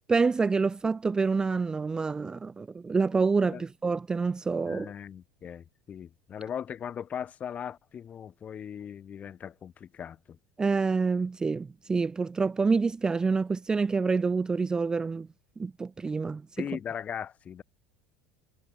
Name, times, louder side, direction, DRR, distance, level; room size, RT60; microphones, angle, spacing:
voice 1, 0.1-4.9 10.6-15.3 15.6-16.7, right 4 dB, 20° right, 0.4 m, -27 dB
voice 2, 4.6-10.4 16.6-17.6, left 8 dB, 35° left, 4.3 m, -39 dB
hypercardioid pair, 75°, 4 cm